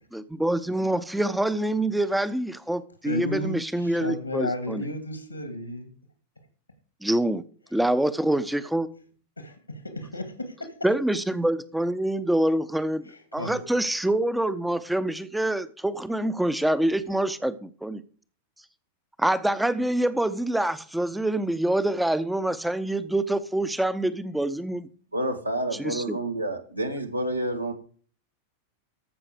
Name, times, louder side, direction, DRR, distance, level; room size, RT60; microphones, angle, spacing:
voice 1, 0.1-4.8 7.0-7.4 7.7-8.9 10.8-13.0 13.3-18.0 19.2-24.9 25.7-26.2, right 1 dB, 5° right, 0.7 m, -26 dB
voice 2, 3.0-5.9 9.4-10.7 13.1-13.7, left 1 dB, 85° left, 2.2 m, -33 dB
voice 3, 25.1-27.7, right 1 dB, 85° right, 1.5 m, -29 dB
14.0 x 5.9 x 5.0 m
figure-of-eight pair, 90°, 0 cm